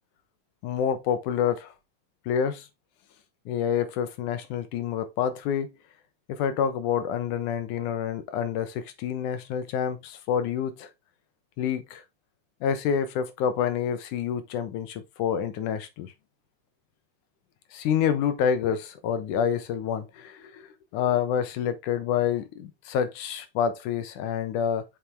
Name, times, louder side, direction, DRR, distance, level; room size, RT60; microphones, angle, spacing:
voice 1, 0.6-1.7 2.3-2.7 3.5-5.7 6.3-10.9 11.6-12.0 12.6-16.1 17.7-20.6 20.9-24.9, left 8 dB, 85° left, 2.6 m, -27 dB
6.5 x 5.8 x 3.1 m
omnidirectional pair, 3.5 m